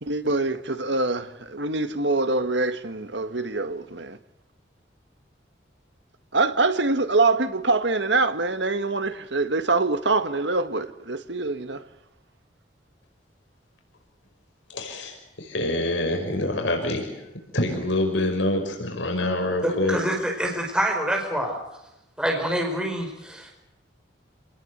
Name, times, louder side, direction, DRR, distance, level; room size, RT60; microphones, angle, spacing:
voice 1, 0.0-4.2 6.3-11.8, right 3 dB, 70° right, 1.7 m, -24 dB
voice 2, 14.7-17.2 17.5-20.0, left 1 dB, 80° left, 5.6 m, -26 dB
voice 3, 19.6-21.6 22.2-23.5, right 1 dB, 5° right, 5.1 m, -26 dB
29.0 x 20.0 x 8.2 m
head